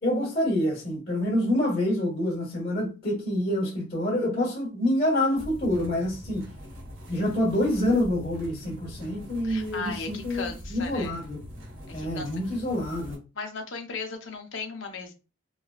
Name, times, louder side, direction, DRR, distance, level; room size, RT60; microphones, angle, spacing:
voice 1, 0.0-6.4 7.1-11.4 11.9-13.2, left 1 dB, 50° left, 1.4 m, -27 dB
sound 1, 5.4-13.2, equal, 90° right, 1.4 m, -43 dB
voice 2, 9.4-11.1 11.9-12.3 13.4-15.1, left 4 dB, 70° left, 0.7 m, -36 dB
3.7 x 2.1 x 2.3 m
head